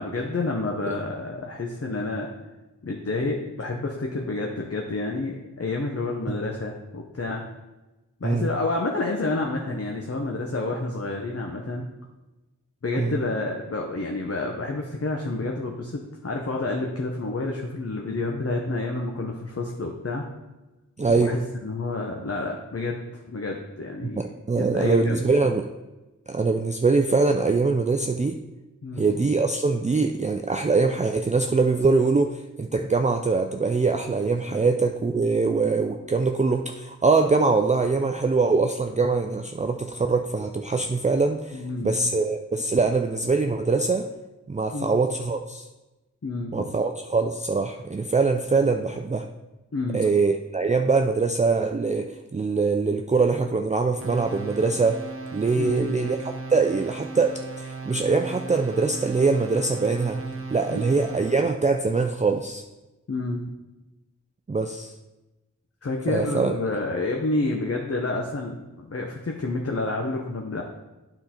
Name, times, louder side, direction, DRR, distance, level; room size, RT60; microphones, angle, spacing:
voice 1, 0.0-2.3 2.8-7.4 8.2-11.8 12.8-20.3 21.1-24.2 24.6-25.2 28.8-29.1 34.5-34.6 41.5-42.0 44.7-44.9 46.2-46.7 49.7-50.0 55.6-55.9 60.7-61.0 63.1-63.5 65.8-70.6, left 2 dB, 45° left, 1 dB, 0.8 m, -29 dB
voice 2, 21.0-21.3 24.0-25.7 26.3-28.4 29.0-44.1 44.5-45.7 46.5-49.3 49.9-55.0 55.3-56.2 56.5-60.2 60.5-62.6 64.5-64.9 66.1-66.5, right 4 dB, 25° right, 5 dB, 0.4 m, -23 dB
sound 1, 54.0-61.6, right 3 dB, 45° right, 1.0 m, -37 dB
9.1 x 4.0 x 4.3 m, 1.1 s
wide cardioid pair, 45°, 32 cm